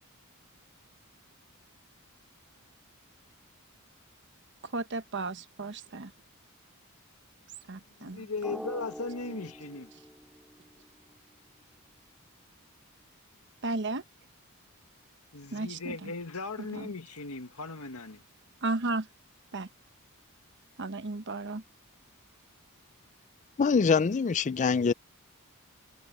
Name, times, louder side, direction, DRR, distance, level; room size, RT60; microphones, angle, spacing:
voice 1, 4.6-6.1 7.7-8.3 13.6-14.0 15.5-16.1 16.6-16.9 18.6-19.1 19.5-19.7 20.8-21.6, right 2 dB, 55° right, 1.1 m, -34 dB
voice 2, 8.0-9.9 15.3-18.2, left 3 dB, 90° left, 1.7 m, -38 dB
Drum, 8.4-11.0, equal, ahead, 2.2 m, -44 dB
voice 3, 23.6-24.9, left 5 dB, 35° left, 0.4 m, -24 dB
head